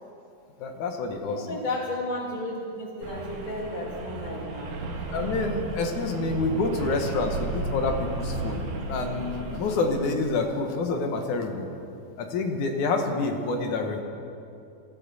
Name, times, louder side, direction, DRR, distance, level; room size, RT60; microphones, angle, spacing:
voice 1, 0.6-1.6 5.1-11.7 12.2-14.0, left 3 dB, 80° left, 3 dB, 2.6 m, -28 dB
voice 2, 1.3-4.8, left 1 dB, 15° left, -1 dB, 1.9 m, -33 dB
sound 1, 3.0-10.2, right 2 dB, 75° right, 2.8 m, -34 dB
23.0 x 14.0 x 4.1 m, 2.6 s
omnidirectional pair, 3.4 m